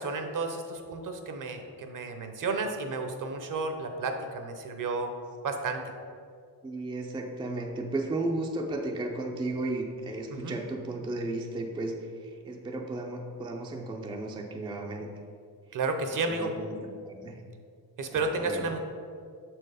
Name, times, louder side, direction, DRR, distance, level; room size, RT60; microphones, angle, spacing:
voice 1, 0.0-5.1 5.4-5.8 10.3-10.6 15.7-16.5 18.0-18.8, right 3 dB, 55° right, 6 dB, 0.8 m, -32 dB
voice 2, 6.6-15.1 15.7-15.8 16.3-17.4 18.1-18.7, right 2 dB, 15° right, 2 dB, 0.4 m, -34 dB
6.9 x 4.6 x 4.9 m, 2.3 s
wide cardioid pair, 150°, 39 cm